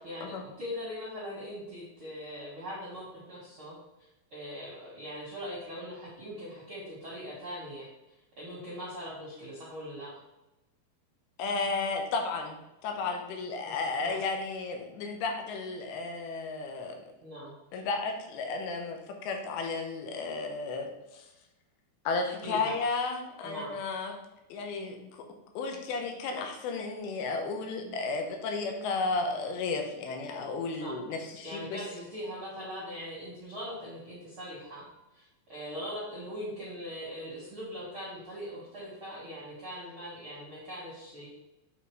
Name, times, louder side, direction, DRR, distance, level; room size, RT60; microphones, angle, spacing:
voice 1, 0.0-7.9 8.4-10.1 13.6-13.7 14.0-14.2 17.2-17.5 22.4-22.7 23.4-23.8 30.8-31.0 31.4-34.8 35.1-41.3, equal, 55° right, -7 dB, 1.5 m, -41 dB
voice 2, 11.4-17.0 17.7-21.3 22.1-24.1 24.5-25.3 25.6-31.8, left 4 dB, 80° left, 3 dB, 3.0 m, -33 dB
8.4 x 3.8 x 4.8 m, 0.94 s
omnidirectional pair, 5.2 m